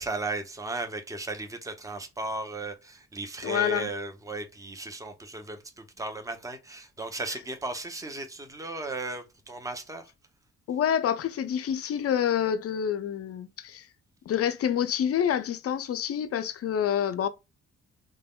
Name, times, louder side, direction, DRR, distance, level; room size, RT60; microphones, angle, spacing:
voice 1, 0.0-10.1, right 3 dB, 10° right, 0.7 m, -36 dB
voice 2, 3.4-3.9 10.7-13.9 14.3-17.3, left 9 dB, 40° left, 0.5 m, -27 dB
3.4 x 2.2 x 2.3 m
hypercardioid pair, 40°, 36 cm